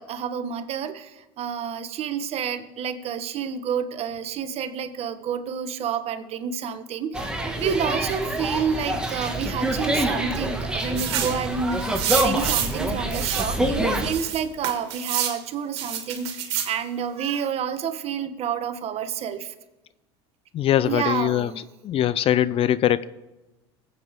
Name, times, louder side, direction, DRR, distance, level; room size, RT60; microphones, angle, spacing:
voice 1, 0.0-19.5 20.8-21.6, right 7 dB, 50° right, 10 dB, 1.1 m, -29 dB
sound 1, 7.1-14.1, right 1 dB, 5° right, 1.8 m, -26 dB
sound 2, 11.0-11.4 12.0-12.8 13.1-13.5 14.1-15.4 15.8-16.7, right 10 dB, 80° right, 1.9 m, -27 dB
voice 2, 20.5-23.0, left 11 dB, 45° left, 18 dB, 0.5 m, -22 dB
20.5 x 8.3 x 3.6 m, 1.1 s
hypercardioid pair, 85°, 14 cm